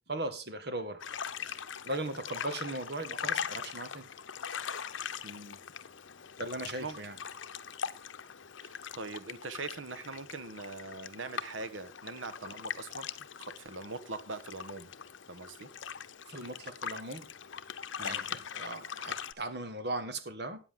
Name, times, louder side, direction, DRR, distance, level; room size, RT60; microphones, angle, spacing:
voice 1, 0.1-1.0 1.5-4.1 4.5-4.6 6.4-7.2 16.3-17.3 18.0-20.6, right 2 dB, 55° right, 1.9 m, -38 dB
sound 1, 1.0-19.3, left 7 dB, 80° left, 0.8 m, -41 dB
voice 2, 5.2-5.6 6.8-7.0 8.6-13.1 13.4-14.9 15.3-15.7 18.0-18.4, right 3 dB, 85° right, 1.3 m, -42 dB
13.5 x 9.7 x 3.8 m
head